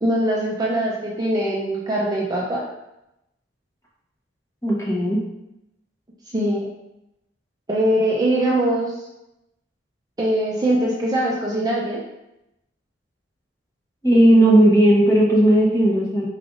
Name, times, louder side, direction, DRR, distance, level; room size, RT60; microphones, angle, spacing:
voice 1, 0.0-2.6 6.3-6.7 7.7-8.9 10.2-12.0, right 1 dB, 20° right, -4 dB, 0.5 m, -22 dB
voice 2, 4.6-5.2 14.0-16.3, right 1 dB, 15° left, -4 dB, 0.8 m, -15 dB
4.7 x 3.3 x 2.5 m, 0.88 s
head